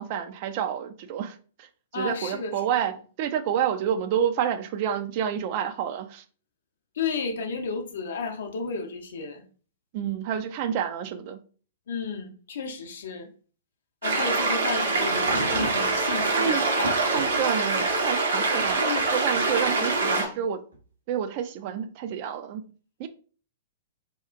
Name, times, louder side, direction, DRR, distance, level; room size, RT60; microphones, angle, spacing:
voice 1, 0.0-2.9 3.2-6.2 9.9-11.4 16.3-16.6 17.1-18.9 19.1-20.6 21.1-22.6 23.0-23.1, right 8 dB, 40° right, 0.3 m, -29 dB
voice 2, 1.9-2.5 6.9-9.4 11.9-13.3 14.0-17.6 18.8-19.1 19.7-20.3, left 5 dB, 60° left, 0.5 m, -33 dB
sound 1, 14.0-20.3, right 3 dB, 65° right, 0.7 m, -24 dB
sound 2, 15.0-18.1 18.6-19.7 20.7-20.8, right 1 dB, 85° right, 1.2 m, -37 dB
2.8 x 2.4 x 2.3 m
figure-of-eight pair, 110°, 0 cm